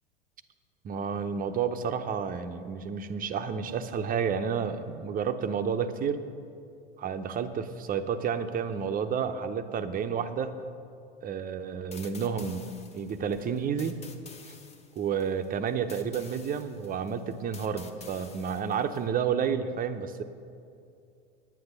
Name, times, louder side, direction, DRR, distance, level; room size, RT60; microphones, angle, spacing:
voice 1, 0.8-6.2 7.0-10.5 11.2-14.0 14.4-14.5 15.0-20.2, right 7 dB, 30° right, 9 dB, 0.7 m, -30 dB
sound 1, 11.9-19.1, left 4 dB, 20° left, 1.0 m, -50 dB
9.7 x 9.2 x 6.7 m, 2.5 s
hypercardioid pair, 90°, 31 cm